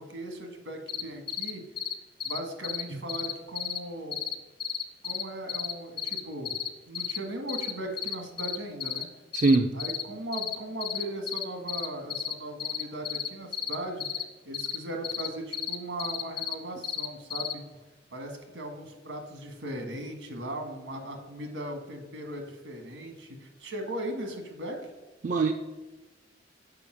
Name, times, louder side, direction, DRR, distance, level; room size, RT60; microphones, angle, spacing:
voice 1, 0.0-1.6 2.2-4.2 5.0-6.5 6.9-9.1 9.7-14.1 14.4-17.6 18.1-24.9, right 1 dB, 80° right, 4 dB, 1.7 m, -38 dB
sound 1, 0.9-1.0 1.3-1.5 1.8-1.9 2.2-2.4 2.6-2.8 3.1-3.8 4.1-4.3 4.6-5.2 5.5-6.7 6.9-7.2 7.5-7.7 8.0-9.0 9.3-10.0 10.3-10.6 10.8-12.3 12.6-14.2 14.5-14.8 15.0-15.3 15.5-16.5 16.8-17.5, left 8 dB, 55° left, 0.8 m, -32 dB
voice 2, 9.3-9.7 25.2-25.5, right 3 dB, 45° right, 6 dB, 0.4 m, -22 dB
6.8 x 5.2 x 6.2 m, 1.2 s
head